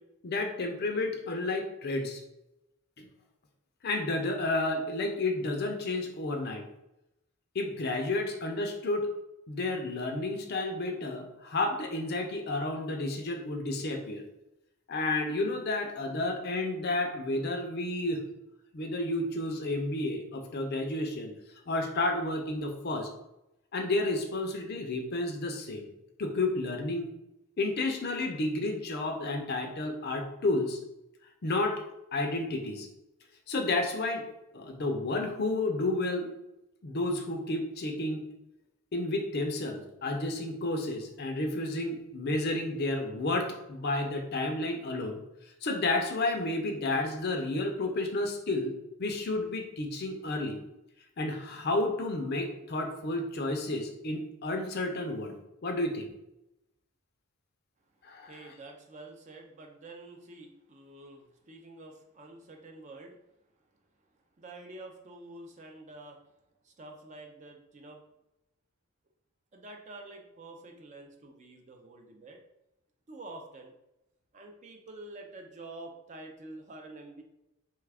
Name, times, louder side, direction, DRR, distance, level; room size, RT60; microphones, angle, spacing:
voice 1, 0.2-2.2 3.0-3.1 3.8-6.6 7.5-9.1 9.5-14.2 14.9-18.2 18.7-21.3 21.7-23.1 23.7-25.8 26.2-27.1 27.6-30.8 31.4-31.8 32.1-32.9 33.5-34.2 34.5-36.3 36.8-38.2 38.9-45.2 45.6-50.6 51.2-55.3 55.6-56.1 58.0-58.3, left 2 dB, 45° left, 4 dB, 0.4 m, -31 dB
voice 2, 58.3-63.2 64.4-66.2 66.6-68.0 69.5-72.4 73.1-73.7 74.3-77.2, right 2 dB, 30° right, 3 dB, 0.3 m, -48 dB
3.2 x 2.3 x 3.3 m, 0.90 s
head